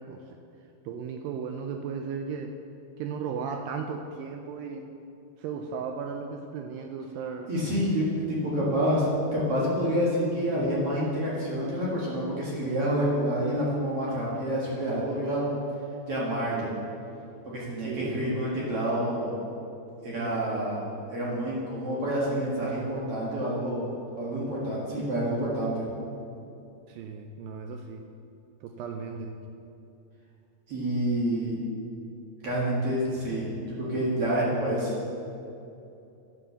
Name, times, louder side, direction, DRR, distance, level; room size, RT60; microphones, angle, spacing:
voice 1, 0.9-2.5 3.0-4.9 5.4-7.6 17.8-18.3 20.1-20.7 26.5-26.6 26.9-28.0 28.6-29.3, right 6 dB, 85° right, 4 dB, 2.0 m, -36 dB
voice 2, 7.5-9.1 9.3-15.5 16.1-16.7 17.5-19.3 20.0-23.9 24.2-25.8 30.7-31.5 32.4-33.5 33.8-34.9, equal, 45° right, -6 dB, 2.1 m, -28 dB
11.0 x 6.1 x 6.8 m, 2.7 s
omnidirectional pair, 4.6 m